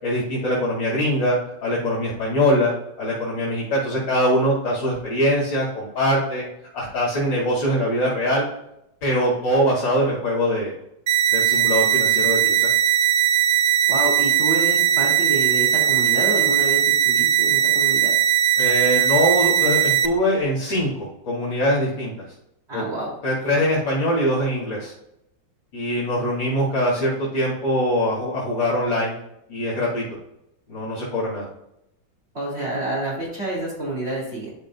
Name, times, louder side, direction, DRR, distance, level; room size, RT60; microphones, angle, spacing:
voice 1, 0.0-6.5 6.7-8.5 9.0-10.7 11.3-12.7 18.6-22.1 22.7-22.8 23.2-24.9 25.7-29.2 29.5-30.0 30.7-31.5, equal, 75° left, -8 dB, 3.1 m, -22 dB
sound 1, 11.1-20.1, right 10 dB, 85° right, 0.7 m, -19 dB
voice 2, 13.9-18.1 22.7-23.1 23.4-23.5 32.3-34.5, right 1 dB, 35° right, -5 dB, 2.9 m, -28 dB
11.5 x 5.4 x 2.2 m, 0.79 s
omnidirectional pair, 2.0 m